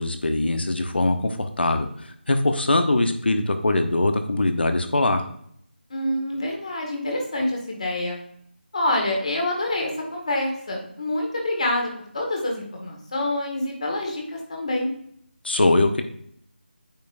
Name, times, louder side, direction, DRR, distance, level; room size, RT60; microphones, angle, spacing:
voice 1, 0.0-1.9 2.3-5.2 15.4-16.0, left 2 dB, 65° left, 7 dB, 1.0 m, -22 dB
voice 2, 5.9-8.2 8.7-14.9, left 1 dB, 35° left, 1 dB, 1.8 m, -27 dB
9.0 x 5.3 x 2.6 m, 0.67 s
figure-of-eight pair, 175°, 6 cm